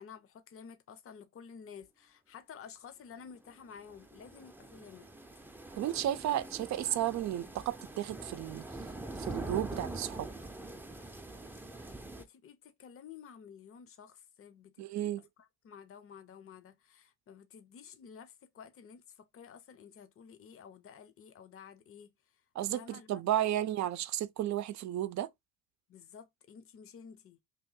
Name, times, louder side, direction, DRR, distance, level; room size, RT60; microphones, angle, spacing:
voice 1, 0.0-5.1 11.8-22.1 22.7-23.5 25.9-27.4, left 7 dB, 45° left, 0.7 m, -52 dB
sound 1, 3.3-12.2, right 2 dB, 5° right, 0.5 m, -44 dB
voice 2, 5.7-8.7 9.2-10.3 14.8-15.2 22.6-25.3, right 12 dB, 65° right, 0.5 m, -33 dB
3.0 x 2.6 x 3.8 m
cardioid pair, 90°, 30 cm